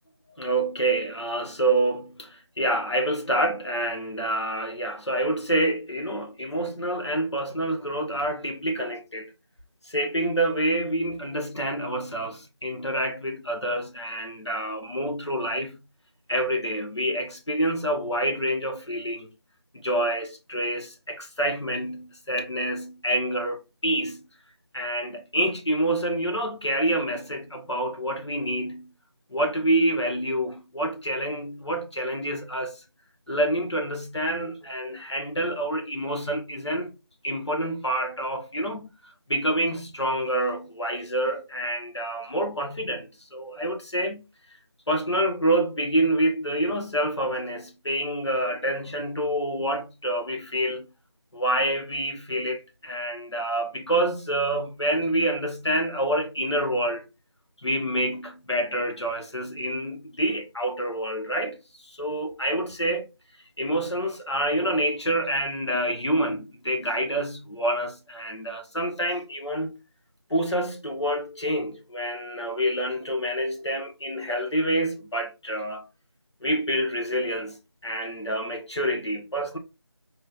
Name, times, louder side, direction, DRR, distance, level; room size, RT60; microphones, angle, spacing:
voice 1, 0.4-9.3 9.9-15.8 16.3-19.3 19.7-24.3 24.7-28.9 29.3-32.8 33.3-36.9 37.2-38.9 39.3-44.2 44.9-50.9 51.3-57.0 57.6-61.6 61.8-63.1 63.6-69.7 70.3-75.8 76.4-77.6 77.8-79.6, right 1 dB, 90° left, 1.6 m, -27 dB
5.0 x 3.3 x 2.6 m
figure-of-eight pair, 170°, 14 cm